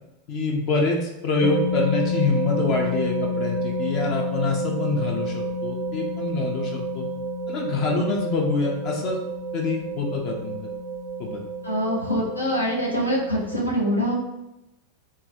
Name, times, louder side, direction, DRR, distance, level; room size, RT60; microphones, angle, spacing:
voice 1, 0.3-7.1 7.5-9.2 9.5-10.5 11.2-11.4, left 3 dB, 45° left, 0 dB, 0.5 m, -26 dB
sound 1, 1.4-13.6, equal, 35° right, 0.4 m, -29 dB
voice 2, 11.6-14.1, equal, 85° left, -3 dB, 0.8 m, -24 dB
3.7 x 2.2 x 2.8 m, 0.91 s
figure-of-eight pair, 90°, 0 cm